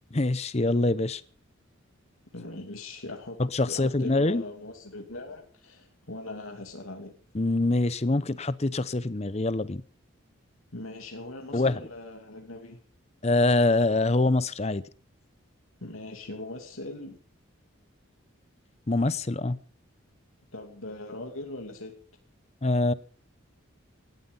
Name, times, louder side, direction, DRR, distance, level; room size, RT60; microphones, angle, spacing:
voice 1, 0.1-1.2 3.5-4.4 7.3-9.8 11.5-11.8 13.2-14.8 18.9-19.6 22.6-22.9, left 2 dB, 30° left, 17 dB, 0.7 m, -24 dB
voice 2, 2.3-3.4 3.7-7.1 10.7-12.8 15.8-17.2 20.5-21.9, left 2 dB, 80° left, 3 dB, 2.7 m, -40 dB
18.0 x 13.5 x 5.5 m, 0.42 s
head